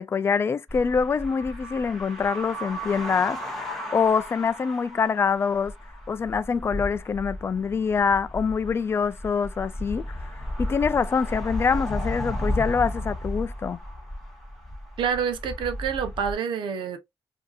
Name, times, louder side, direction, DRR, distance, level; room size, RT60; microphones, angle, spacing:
voice 1, 0.0-5.7 6.1-10.3 10.6-13.8, left 6 dB, 30° left, 0.3 m, -25 dB
sound 1, 0.7-16.3, left 1 dB, 5° left, 1.6 m, -34 dB
voice 2, 15.0-17.0, right 7 dB, 90° right, 0.7 m, -27 dB
4.8 x 2.7 x 2.4 m
cardioid pair, 130°, 8 cm